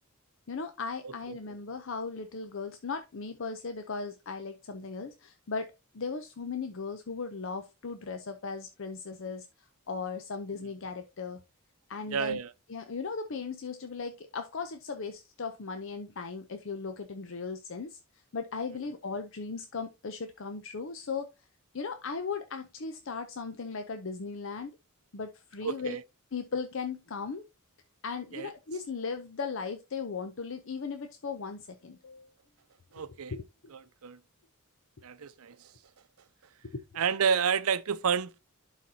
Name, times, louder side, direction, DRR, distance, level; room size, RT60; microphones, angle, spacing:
voice 1, 0.5-9.5 9.9-11.4 11.9-12.4 12.7-18.0 18.3-21.3 21.7-24.7 25.1-26.0 26.3-27.4 28.0-32.3 33.3-33.4 36.6-36.8, left 4 dB, 60° left, 0.6 m, -37 dB
voice 2, 1.0-1.4 12.1-12.5 25.6-26.0 28.3-28.5 32.9-33.3 34.0-34.2 35.0-35.6 37.0-38.4, right 6 dB, 85° right, 0.6 m, -30 dB
11.5 x 4.1 x 2.7 m
head